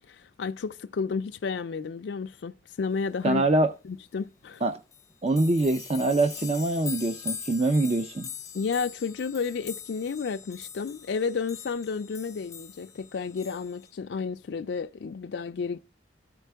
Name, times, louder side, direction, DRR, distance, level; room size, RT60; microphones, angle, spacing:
voice 1, 0.1-3.4 3.8-4.6 8.5-15.8, left 5 dB, 65° left, 0.4 m, -32 dB
voice 2, 3.2-3.7 4.6-4.7 5.2-8.3, right 2 dB, 35° right, 0.5 m, -24 dB
sound 1, 4.5-4.6 4.9-13.9, left 7 dB, 20° left, 0.6 m, -42 dB
13.5 x 4.6 x 3.4 m
head